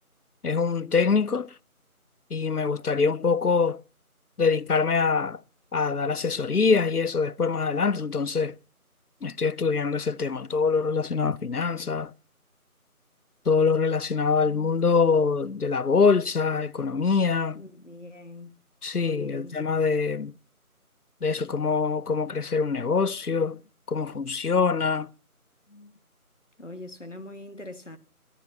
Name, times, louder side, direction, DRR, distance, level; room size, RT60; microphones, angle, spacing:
voice 1, 0.4-1.5 2.3-3.8 4.4-5.4 5.7-8.5 9.2-12.1 13.5-17.6 18.8-20.3 21.2-23.6 23.9-25.1, left 5 dB, 85° left, 0.8 m, -24 dB
voice 2, 17.5-18.5 19.0-19.5 25.7-25.9 26.6-28.0, left 1 dB, 55° left, 1.7 m, -43 dB
27.0 x 14.0 x 2.8 m
figure-of-eight pair, 180°, 44 cm